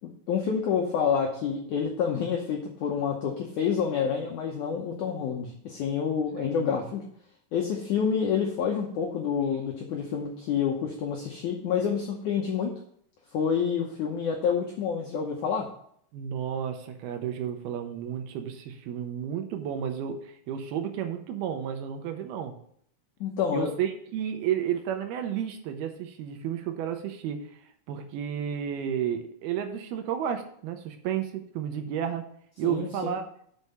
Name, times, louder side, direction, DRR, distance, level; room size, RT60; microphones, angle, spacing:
voice 1, 0.0-7.0 7.5-12.7 13.3-15.7 23.2-23.7 32.6-33.1, left 7 dB, 85° left, 1 dB, 1.7 m, -28 dB
voice 2, 16.1-22.6 23.5-32.3 32.6-33.3, right 9 dB, 80° right, 6 dB, 2.6 m, -32 dB
6.4 x 5.5 x 6.8 m, 0.65 s
omnidirectional pair, 4.7 m